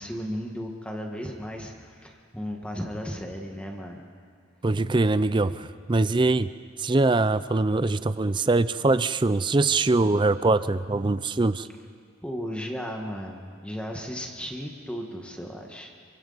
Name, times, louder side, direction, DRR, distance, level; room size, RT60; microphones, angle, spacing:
voice 1, 0.0-4.0 12.2-15.9, equal, 5° left, 1 dB, 1.6 m, -35 dB
voice 2, 4.6-6.5 6.8-11.7, right 2 dB, 25° right, 14 dB, 0.5 m, -23 dB
28.5 x 24.5 x 4.1 m, 2.2 s
head